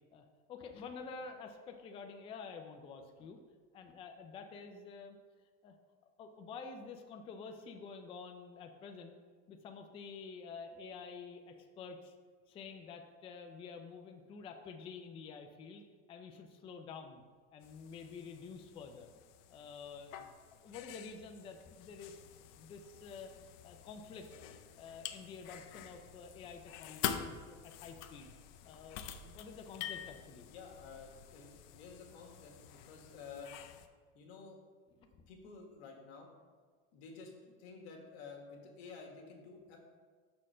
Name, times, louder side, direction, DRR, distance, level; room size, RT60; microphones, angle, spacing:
voice 1, 0.1-3.4 3.7-5.2 5.6-5.8 6.2-9.2 9.5-12.2 12.5-15.8 16.1-17.2 17.5-19.1 19.5-22.2 22.6-23.3 23.6-24.3 24.8-28.3 28.7-30.5, left 5 dB, 20° left, 5 dB, 0.3 m, -49 dB
sound 1, 17.6-33.9, left 10 dB, 65° left, 0.6 m, -47 dB
voice 2, 30.4-33.5 34.1-34.6 35.3-36.3 36.9-39.8, left 4 dB, 85° left, 1 dB, 1.5 m, -51 dB
6.1 x 4.3 x 5.5 m, 1.5 s
cardioid pair, 150°, 32 cm